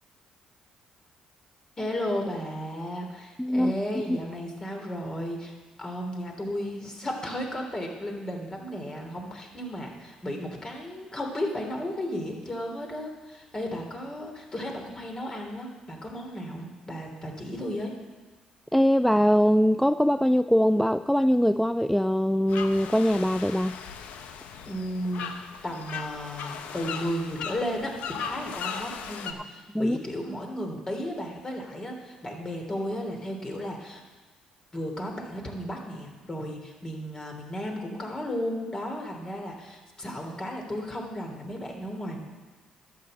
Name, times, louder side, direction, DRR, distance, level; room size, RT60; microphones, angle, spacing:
voice 1, 1.8-17.9 24.7-34.0 34.7-42.2, equal, 30° left, 1 dB, 3.3 m, -34 dB
voice 2, 3.4-3.7 18.7-23.8 29.7-30.0, equal, 5° left, 12 dB, 0.3 m, -22 dB
sound 1, 22.5-29.3, left 6 dB, 75° left, 0.9 m, -38 dB
11.5 x 7.2 x 7.9 m, 1.3 s
supercardioid pair, 65°, 2 cm